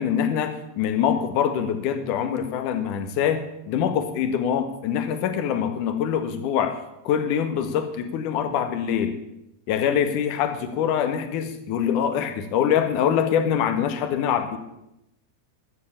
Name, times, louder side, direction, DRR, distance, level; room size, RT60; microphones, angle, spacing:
voice 1, 0.0-6.8 7.0-9.2 9.7-14.6, left 8 dB, 45° left, 9 dB, 1.5 m, -24 dB
13.0 x 7.7 x 7.2 m, 0.84 s
figure-of-eight pair, 90°, 0 cm